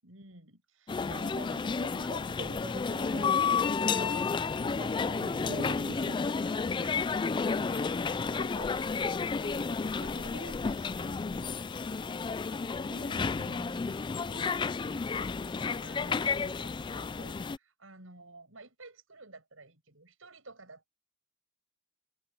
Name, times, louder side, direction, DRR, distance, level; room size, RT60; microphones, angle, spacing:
voice 1, 0.0-2.1 6.8-9.0 9.4-11.9 14.3-20.9, right 3 dB, 80° right, 7.7 m, -53 dB
sound 1, 0.9-17.6, left 5 dB, 25° left, 0.3 m, -31 dB
voice 2, 1.1-1.5 1.8-6.4 12.9-14.0, right 3 dB, 45° right, 0.6 m, -45 dB
head